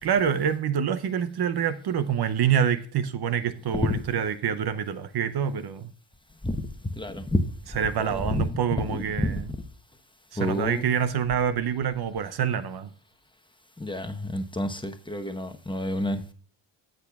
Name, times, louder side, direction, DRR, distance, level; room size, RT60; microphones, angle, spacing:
voice 1, 0.0-5.9 7.7-9.5 10.3-12.9, right 8 dB, 60° right, 0.8 m, -26 dB
voice 2, 6.4-7.4 8.1-8.4 8.9-9.4 10.4-10.9 13.8-16.3, left 1 dB, 10° left, 1.0 m, -29 dB
14.5 x 6.3 x 2.4 m
cardioid pair, 65°, 44 cm